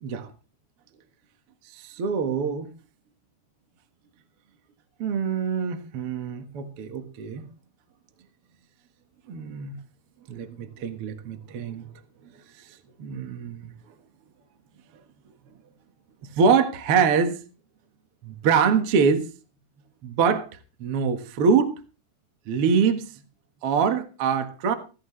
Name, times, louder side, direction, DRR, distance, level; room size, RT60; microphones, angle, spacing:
voice 1, 1.7-2.7 5.0-7.5 9.3-9.7 10.3-11.9 13.0-13.7 16.4-17.4 18.2-19.3 20.0-20.5 20.8-21.7 22.5-23.1 23.6-24.7, right 6 dB, 70° right, 1.3 m, -24 dB
17.5 x 15.5 x 3.2 m
omnidirectional pair, 5.1 m